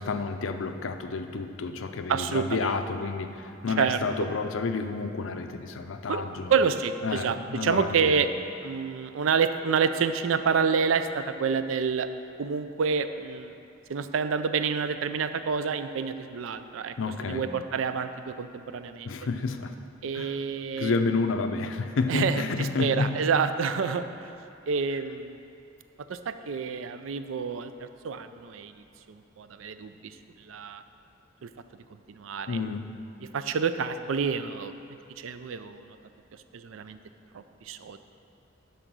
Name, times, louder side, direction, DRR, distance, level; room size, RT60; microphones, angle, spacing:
voice 1, 0.0-6.5 7.0-8.3 17.0-17.5 19.0-19.7 20.1-20.4 20.7-23.2 32.5-32.9, left 4 dB, 85° left, 7 dB, 0.5 m, -30 dB
voice 2, 2.1-2.8 3.8-4.0 6.1-6.2 6.5-7.4 7.6-8.3 8.6-12.1 12.4-13.5 13.9-16.9 17.2-19.1 20.0-20.9 22.1-24.4 24.7-25.4 26.1-30.8 31.4-31.5 32.1-32.6 33.2-34.7 35.2-36.0 36.5-37.0 37.3-38.0, right 6 dB, 90° right, 10 dB, 0.4 m, -28 dB
10.0 x 3.9 x 6.1 m, 2.8 s
head